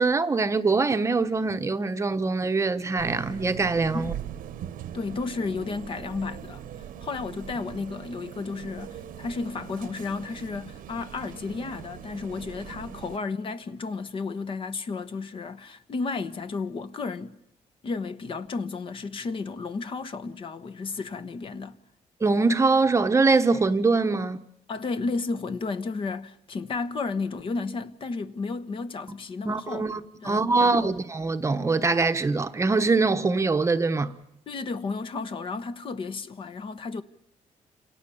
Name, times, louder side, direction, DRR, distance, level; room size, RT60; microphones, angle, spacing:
voice 1, 0.0-4.1 22.2-24.4 29.5-34.1, right 3 dB, 20° right, 1.0 m, -23 dB
sound 1, 3.0-13.2, right 10 dB, 80° right, 1.2 m, -41 dB
voice 2, 4.9-6.6 7.0-17.4 17.8-21.8 24.7-29.9 30.2-30.9 34.5-37.0, left 4 dB, 40° left, 1.2 m, -33 dB
30.0 x 27.5 x 7.1 m
cardioid pair, 155°, 14 cm